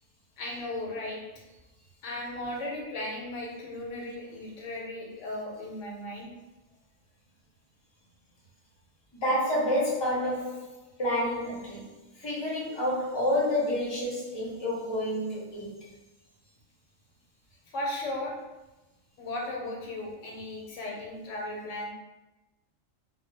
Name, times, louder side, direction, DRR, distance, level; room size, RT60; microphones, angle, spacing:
voice 1, 0.4-1.2 2.0-6.3 17.7-18.4 19.2-21.9, left 1 dB, 70° left, -2 dB, 0.9 m, -36 dB
voice 2, 9.2-10.7 11.0-11.9 12.2-15.8, left 1 dB, 25° left, -6 dB, 0.6 m, -29 dB
2.2 x 2.1 x 3.2 m, 1.1 s
omnidirectional pair, 1.4 m